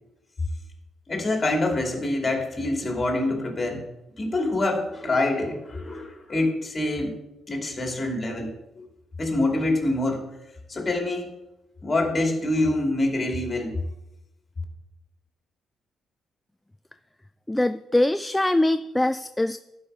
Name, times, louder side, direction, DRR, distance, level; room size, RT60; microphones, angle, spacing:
voice 1, 1.1-3.8 4.2-7.2 7.5-8.5 8.7-8.9 9.2-10.2 10.7-11.3 11.8-13.7, left 2 dB, 30° left, 1 dB, 2.6 m, -25 dB
voice 2, 17.5-19.6, left 1 dB, 10° left, 10 dB, 0.3 m, -23 dB
12.0 x 4.8 x 5.5 m, 0.91 s
cardioid pair, 90°, 0 cm